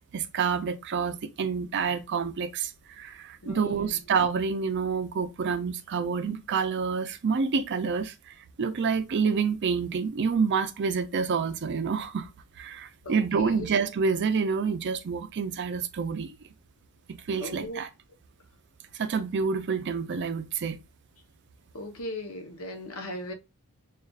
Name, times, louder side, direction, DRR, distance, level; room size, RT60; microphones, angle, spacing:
voice 1, 0.1-12.3 12.6-16.4 17.1-17.9 18.9-20.8, right 5 dB, 50° right, 0.4 m, -28 dB
voice 2, 3.4-4.0 13.0-13.7 17.4-17.8 21.7-23.3, left 1 dB, 70° left, 0.8 m, -37 dB
6.4 x 2.4 x 2.3 m
head